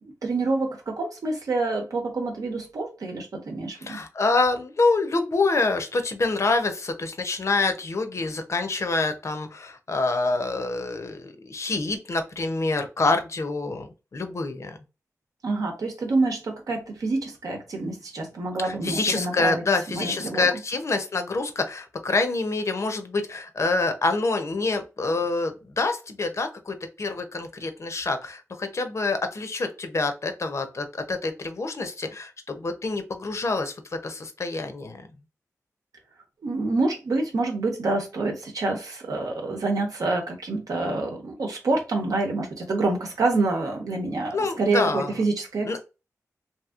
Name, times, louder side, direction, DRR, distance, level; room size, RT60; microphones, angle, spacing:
voice 1, 0.2-4.0 15.4-20.5 36.4-45.8, right 3 dB, 85° right, 0.9 m, -27 dB
voice 2, 3.8-14.8 18.6-33.7 34.0-35.0 44.3-45.2 45.6-45.8, left 3 dB, 55° left, 0.6 m, -26 dB
2.9 x 2.7 x 2.4 m
wide cardioid pair, 75°, 6 cm